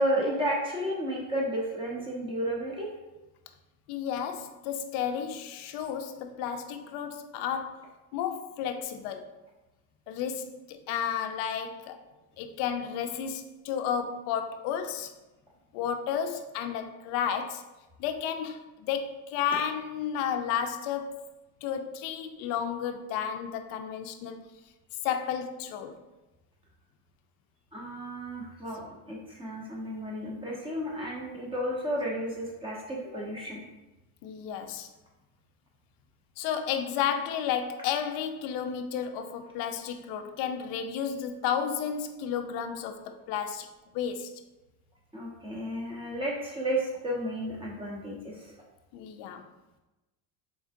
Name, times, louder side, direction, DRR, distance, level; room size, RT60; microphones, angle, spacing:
voice 1, 0.0-2.9 27.7-33.6 45.1-48.5, equal, 10° right, -2 dB, 0.9 m, -32 dB
voice 2, 3.9-9.3 10.1-12.0 12.4-15.1 15.7-17.6 18.0-21.2 21.6-24.4 25.0-26.0 34.2-34.9 36.4-44.3 48.9-49.4, left 8 dB, 50° left, 7 dB, 0.5 m, -32 dB
4.8 x 3.8 x 2.6 m, 1.0 s
supercardioid pair, 135°, 45 cm